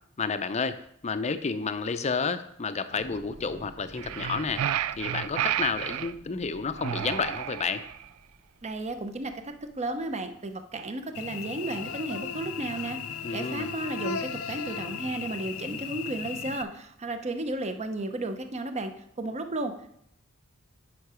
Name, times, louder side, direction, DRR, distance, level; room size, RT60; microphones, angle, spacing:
voice 1, 0.2-0.8 1.0-4.6 5.0-7.8 13.2-13.7, left 5 dB, 30° left, 11 dB, 0.5 m, -30 dB
Thunder / Explosion, 2.8-11.1, right 1 dB, 55° right, 1.1 m, -52 dB
sound 1, 3.9-6.1 6.8-8.0, right 10 dB, 75° right, 0.4 m, -31 dB
voice 2, 8.6-13.0 13.3-18.9 19.2-19.9, right 2 dB, 30° right, 8 dB, 0.8 m, -33 dB
Cricket / Buzz, 11.1-16.6, left 6 dB, 80° left, 0.6 m, -36 dB
9.4 x 5.7 x 4.9 m, 0.72 s
head